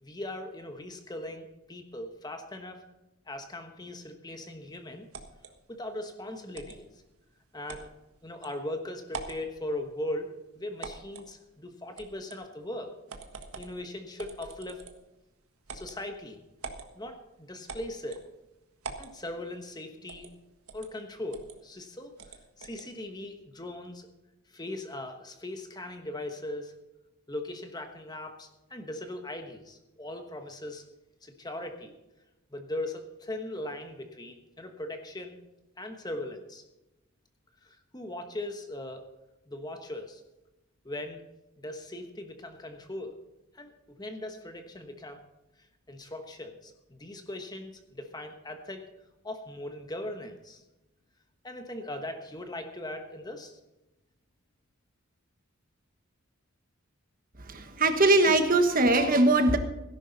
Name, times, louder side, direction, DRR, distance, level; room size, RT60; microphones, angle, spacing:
voice 1, 0.0-2.8 3.3-5.1 5.7-7.0 7.5-7.9 8.2-12.9 13.6-14.8 15.7-16.4 16.9-18.2 19.0-20.3 20.7-24.1 24.5-26.7 27.3-30.8 31.2-32.0 32.5-35.4 35.8-36.6 37.6-39.1 39.5-40.2 40.8-41.2 41.6-43.2 43.5-45.2 45.6-48.8 49.2-50.6 51.4-53.6, left 1 dB, 20° left, 6 dB, 1.2 m, -39 dB
sound 1, 5.1-5.5 6.5-6.8 7.7-7.9 8.4-8.5 9.1-9.4 10.8-11.3 12.0-12.4 13.1-13.8 14.2-15.1 15.7-16.0 16.6-16.9 17.7-18.3 18.8-19.1 20.1-20.3 20.7-20.9 21.3-21.6 22.2-22.9, right 4 dB, 85° right, 1.6 m, -43 dB
voice 2, 57.4-59.6, right 2 dB, 40° right, 7 dB, 1.2 m, -21 dB
17.0 x 11.0 x 4.0 m, 0.98 s
head